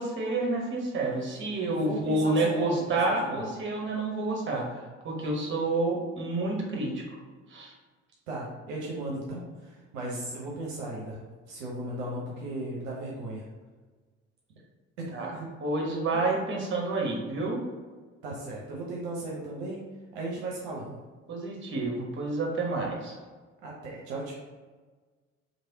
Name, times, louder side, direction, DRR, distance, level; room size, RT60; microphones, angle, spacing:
voice 1, 0.0-7.2 7.5-7.7 15.1-15.3 15.6-17.6 21.3-23.2, right 2 dB, 30° right, -1 dB, 0.9 m, -29 dB
voice 2, 1.7-2.9 3.2-3.4 8.3-13.5 15.0-15.5 18.2-19.8 20.1-21.0 23.6-24.3, right 1 dB, 55° right, -3 dB, 0.7 m, -36 dB
3.2 x 2.5 x 2.7 m, 1.4 s
figure-of-eight pair, 55°, 38 cm